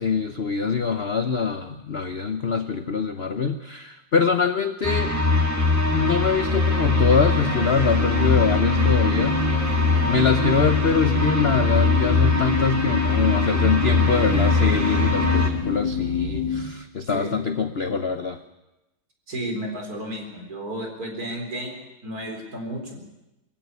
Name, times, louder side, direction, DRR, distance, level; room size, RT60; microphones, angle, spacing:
voice 1, 0.0-5.1 5.9-9.5 10.1-18.4, left 5 dB, 45° left, 9 dB, 0.8 m, -24 dB
sound 1, 4.8-15.5, left 3 dB, 10° right, 2.0 m, -22 dB
sound 2, 6.4-16.7, left 6 dB, 65° left, 3.6 m, -29 dB
voice 2, 19.3-21.8 22.0-23.0, right 1 dB, 45° right, 3 dB, 4.8 m, -32 dB
23.0 x 15.5 x 9.6 m, 0.97 s
omnidirectional pair, 2.1 m